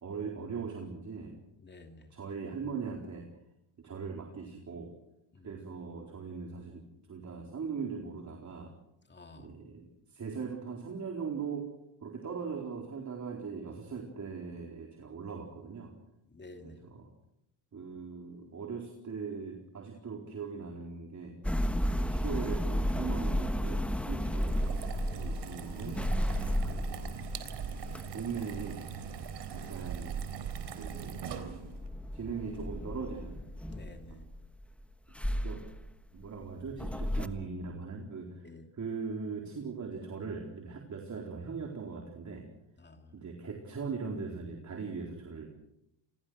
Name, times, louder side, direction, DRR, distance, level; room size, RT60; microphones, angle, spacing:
voice 1, 0.0-1.4 2.1-3.3 3.8-4.9 5.4-8.7 9.3-11.7 12.0-15.9 16.6-17.1 17.7-21.4 21.9-24.6 25.1-26.0 26.6-27.1 28.1-28.9 29.5-30.5 30.7-31.2 31.5-31.6 32.1-33.4 34.1-34.3 35.4-35.7 36.1-38.5 38.7-42.5 43.1-45.5, right 5 dB, 35° right, 2 dB, 4.2 m, -40 dB
voice 2, 1.6-2.1 5.3-5.6 9.1-9.5 16.3-16.8 24.9-25.3 29.6-29.7 33.7-34.3 38.4-38.7 42.8-43.1, left 3 dB, 20° left, 5 dB, 2.7 m, -51 dB
sound 1, 21.4-30.6 30.8-34.7 35.2-37.3, equal, 5° left, 1.3 m, -33 dB
sound 2, 24.3-31.9, right 8 dB, 60° right, 3.8 m, -40 dB
29.5 x 21.5 x 6.4 m, 0.84 s
cardioid pair, 110°, 47 cm